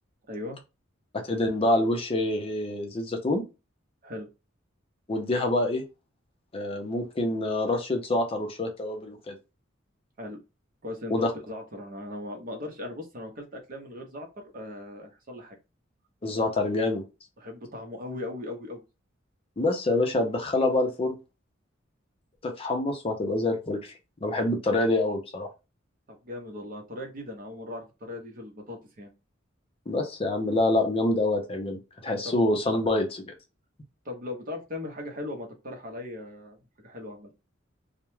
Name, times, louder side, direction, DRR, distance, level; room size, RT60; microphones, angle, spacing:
voice 1, 0.3-0.6 4.0-4.3 10.2-10.4 10.8-14.3 14.5-15.6 17.4-18.8 26.1-29.1 32.2-32.4 34.0-37.3, left 1 dB, 45° right, 3 dB, 0.7 m, -38 dB
voice 2, 1.3-3.4 5.1-5.8 6.5-9.4 11.1-11.3 16.2-17.0 19.6-21.2 22.4-23.8 24.2-25.5 29.9-33.2, left 2 dB, 30° left, 3 dB, 0.5 m, -26 dB
2.2 x 2.1 x 3.0 m, 0.27 s
head